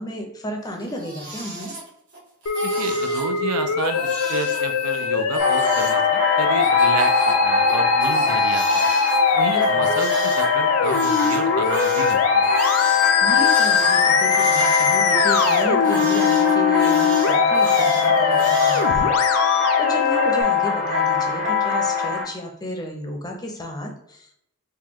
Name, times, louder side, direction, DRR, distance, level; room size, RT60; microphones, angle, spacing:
voice 1, 0.0-1.7 9.5-9.9 13.2-24.4, equal, 20° left, 2 dB, 0.5 m, -33 dB
Crying sobbing, 0.7-2.2 2.4-3.3 3.8-6.0 6.6-10.4 10.8-18.9, right 1 dB, 60° right, 1.1 m, -35 dB
Musical instrument, 2.5-20.4, left 5 dB, 70° left, 0.4 m, -21 dB
voice 2, 2.6-8.9 9.3-12.5, right 5 dB, 85° right, 7 dB, 0.4 m, -31 dB
sound 1, 5.4-22.2, left 5 dB, 35° right, 1.1 m, -22 dB
3.6 x 2.2 x 2.9 m, 0.75 s
head